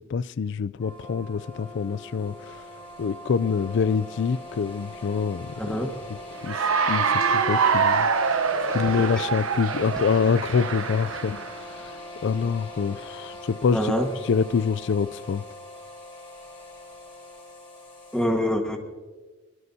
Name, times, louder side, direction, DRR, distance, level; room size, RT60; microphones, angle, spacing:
voice 1, 0.0-2.6 3.0-5.8 6.1-6.2 6.4-8.1 8.7-11.4 11.8-11.9 12.2-13.9 14.2-15.4, left 6 dB, 60° left, 0.4 m, -26 dB
sound 1, 0.8-18.3, left 1 dB, 25° left, 6.5 m, -42 dB
voice 2, 5.6-5.9 13.7-14.1 18.1-18.8, equal, 5° left, 1.5 m, -24 dB
Cheering / Applause, 6.4-11.6, right 5 dB, 85° right, 1.0 m, -24 dB
23.5 x 20.5 x 2.8 m
head